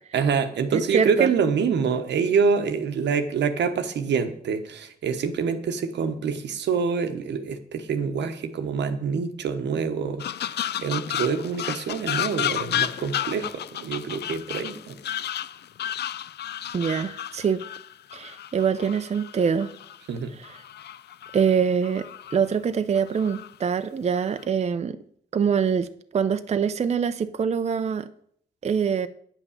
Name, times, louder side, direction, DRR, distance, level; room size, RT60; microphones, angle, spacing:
voice 1, 0.1-15.0 20.1-20.3, right 6 dB, 90° right, 1.0 m, -26 dB
voice 2, 0.7-1.3 16.7-17.6 18.1-19.7 21.3-22.1 22.3-25.0 25.3-28.1 28.6-29.1, right 6 dB, 40° right, 0.5 m, -24 dB
sound 1, 10.2-20.0 20.4-21.5 21.8-22.4 22.9-23.5 24.1-24.4, left 11 dB, 70° left, 0.4 m, -32 dB
9.0 x 5.9 x 7.0 m
cardioid pair, 85°, 18 cm